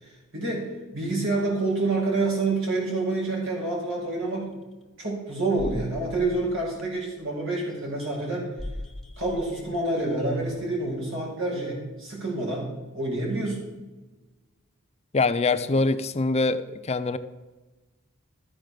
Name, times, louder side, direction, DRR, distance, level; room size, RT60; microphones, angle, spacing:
voice 1, 0.0-4.6 5.0-8.5 9.2-13.7, right 2 dB, 60° right, -3 dB, 5.3 m, -28 dB
sound 1, 4.4-4.5 5.6-7.2 8.0-8.3 8.6-10.8, left 1 dB, ahead, 1.4 m, -39 dB
voice 2, 15.1-17.2, left 3 dB, 30° left, 11 dB, 0.5 m, -24 dB
13.5 x 7.7 x 6.7 m, 1.2 s
head